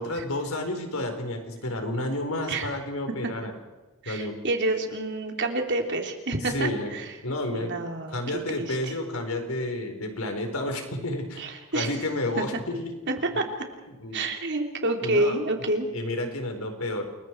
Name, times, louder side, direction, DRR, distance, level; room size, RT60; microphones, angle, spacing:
voice 1, 0.0-3.5 4.1-4.3 6.4-6.9 7.2-7.8 8.1-11.4 11.7-12.9 13.3-13.5 13.9-14.3 15.0-15.4 15.9-17.1, left 1 dB, 80° left, 5 dB, 4.4 m, -31 dB
voice 2, 4.0-7.1 7.5-8.2 8.6-8.9 11.4-11.9 12.4-12.5 13.1-13.4 14.1-15.9, right 2 dB, 55° right, 3 dB, 3.3 m, -28 dB
29.0 x 22.0 x 4.7 m, 1.2 s
head